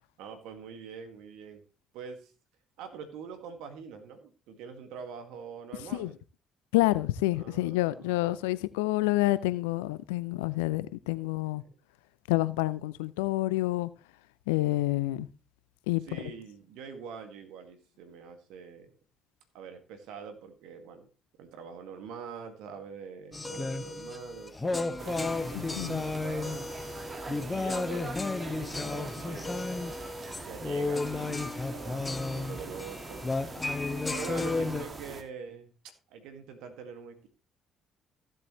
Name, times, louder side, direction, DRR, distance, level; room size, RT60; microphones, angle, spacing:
voice 1, 0.2-1.6 1.9-2.3 2.8-6.2 7.3-8.6 11.2-11.7 16.0-18.9 19.5-21.1 21.4-26.7 27.5-28.2 28.5-29.8 30.4-33.2 34.1-35.7 36.1-37.3, right 6 dB, 70° right, 2.0 m, -44 dB
voice 2, 6.7-11.6 12.3-13.9 14.5-15.3 15.9-16.0 25.8-26.0, left 18 dB, 80° left, 0.5 m, -28 dB
sound 1, 23.3-34.8, left 3 dB, 25° left, 1.2 m, -33 dB
sound 2, 25.0-35.2, right 3 dB, 35° right, 1.9 m, -43 dB
15.5 x 7.5 x 3.2 m
hypercardioid pair, 50°, 0 cm